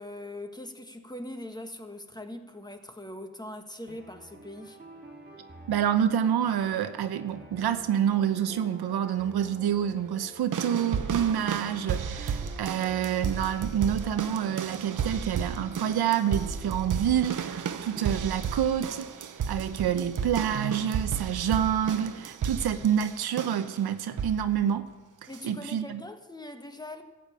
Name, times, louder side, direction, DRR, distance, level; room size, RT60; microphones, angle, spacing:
voice 1, 0.0-4.8 25.3-27.0, left 1 dB, 10° left, 1.4 m, -41 dB
sound 1, 3.9-18.6, right 1 dB, 25° right, 3.0 m, -48 dB
voice 2, 5.7-24.9 25.4-26.0, right 9 dB, 85° right, 0.8 m, -28 dB
sound 2, 10.5-23.7 24.2-24.5 25.3-25.4, right 7 dB, 55° right, 0.8 m, -33 dB
12.5 x 7.3 x 8.4 m
cardioid pair, 75°, 37 cm